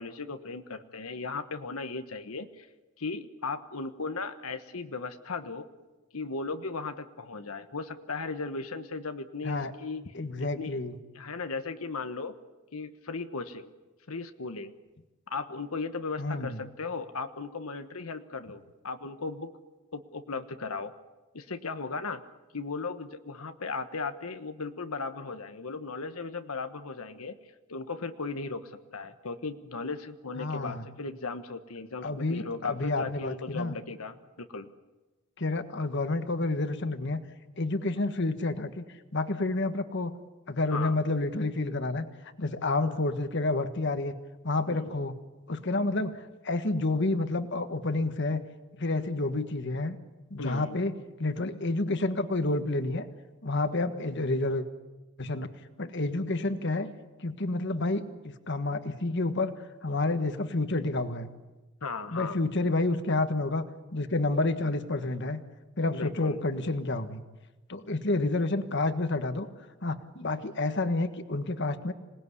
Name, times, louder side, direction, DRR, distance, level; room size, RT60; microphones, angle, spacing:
voice 1, 0.0-2.7 3.0-5.7 6.1-10.8 11.1-12.3 12.7-13.7 14.1-14.7 15.3-19.6 19.9-20.9 21.3-22.2 22.5-27.4 27.7-34.7 40.7-41.0 44.7-44.9 50.4-50.7 61.8-62.4 65.9-66.4, left 4 dB, 90° left, 8 dB, 1.2 m, -37 dB
voice 2, 10.1-11.0 16.2-16.6 30.4-30.8 32.0-33.7 35.4-37.2 37.6-38.8 39.1-40.1 40.5-42.0 42.4-44.1 44.4-45.2 45.5-48.4 48.7-50.0 50.3-50.9 51.2-53.1 53.4-54.7 55.2-55.5 55.8-56.9 57.2-58.1 58.5-59.5 59.8-61.3 62.1-65.4 65.8-67.2 67.7-69.5 69.8-71.9, left 2 dB, 55° left, 9 dB, 1.5 m, -29 dB
27.0 x 19.0 x 9.8 m, 1.2 s
head